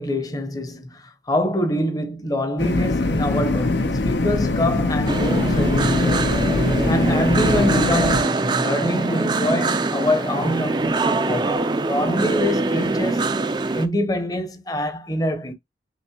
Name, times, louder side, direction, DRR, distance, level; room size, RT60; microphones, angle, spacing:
voice 1, 0.0-6.4 6.9-13.2 13.7-15.5, equal, 20° left, 0.8 m, -25 dB
sound 1, 2.6-8.2, left 2 dB, 70° left, 0.8 m, -22 dB
sound 2, 5.1-13.9, right 3 dB, 25° right, 0.4 m, -23 dB
6.0 x 3.1 x 2.9 m
head